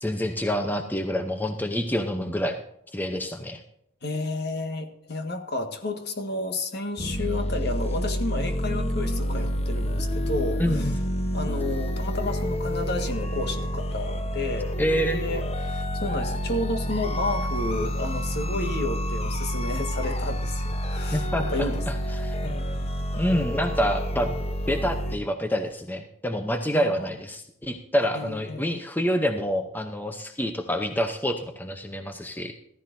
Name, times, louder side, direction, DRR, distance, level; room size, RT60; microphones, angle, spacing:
voice 1, 0.0-2.6 2.9-3.6 10.6-11.0 14.8-15.2 21.1-21.5 21.9-22.4 23.1-24.3 24.7-32.6, equal, 10° left, 6 dB, 0.7 m, -27 dB
voice 2, 4.0-10.9 11.3-21.8 22.4-22.9 26.7-27.1 28.1-28.8, left 2 dB, 55° left, 5 dB, 1.7 m, -31 dB
sound 1, 7.0-25.2, equal, 30° left, 1.0 m, -28 dB
14.5 x 14.5 x 2.7 m, 0.75 s
head